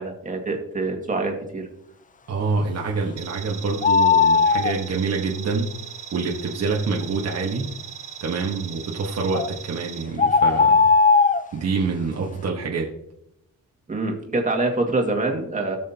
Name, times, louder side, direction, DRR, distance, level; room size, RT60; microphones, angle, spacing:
voice 1, 0.0-1.7 13.9-15.8, right 2 dB, 20° right, 2 dB, 2.2 m, -25 dB
voice 2, 2.3-5.7 6.1-7.7 8.2-10.9 11.5-12.9, right 4 dB, 45° right, -2 dB, 1.5 m, -26 dB
sound 1, 3.2-10.0, right 9 dB, 65° right, 2.2 m, -39 dB
sound 2, 3.8-4.7 9.3-9.5 10.2-11.4, left 4 dB, 25° left, 0.5 m, -17 dB
18.5 x 6.4 x 2.9 m, 0.81 s
cardioid pair, 115°, 34 cm